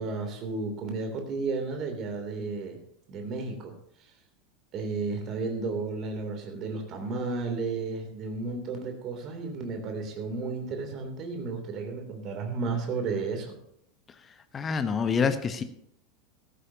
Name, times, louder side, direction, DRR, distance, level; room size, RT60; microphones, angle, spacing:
voice 1, 0.0-2.8 3.1-3.7 4.7-13.6, right 4 dB, 40° right, 4 dB, 3.0 m, -33 dB
voice 2, 14.5-15.6, left 5 dB, 25° left, 10 dB, 1.0 m, -26 dB
14.5 x 13.5 x 2.9 m, 0.70 s
figure-of-eight pair, 80°, 0 cm